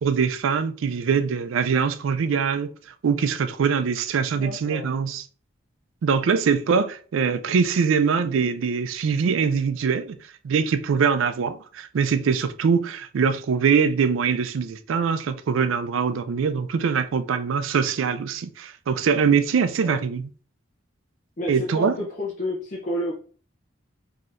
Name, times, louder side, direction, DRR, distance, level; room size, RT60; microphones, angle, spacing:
voice 1, 0.0-2.7 3.0-5.2 6.0-10.2 10.4-20.2 21.5-21.9, right 6 dB, 90° right, 0.4 m, -23 dB
voice 2, 4.4-4.9 19.8-20.0 21.4-23.1, left 1 dB, 40° left, 0.6 m, -30 dB
3.9 x 2.9 x 2.5 m
head